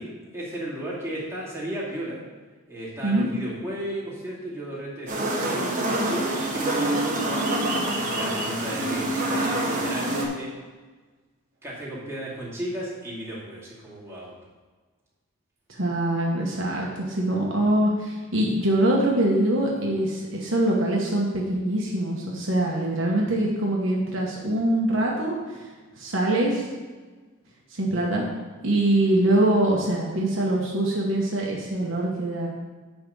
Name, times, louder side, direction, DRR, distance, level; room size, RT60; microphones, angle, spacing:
voice 1, 0.0-2.2 2.7-10.5 11.6-14.3 29.2-29.3, right 1 dB, 15° right, -7 dB, 2.5 m, -34 dB
sound 1, 5.1-10.3, right 1 dB, 35° right, 1.3 m, -26 dB
voice 2, 15.7-25.7 26.0-26.7 27.7-28.2 28.6-32.5, right 1 dB, 60° right, -2 dB, 1.2 m, -23 dB
10.5 x 3.6 x 6.9 m, 1.4 s
head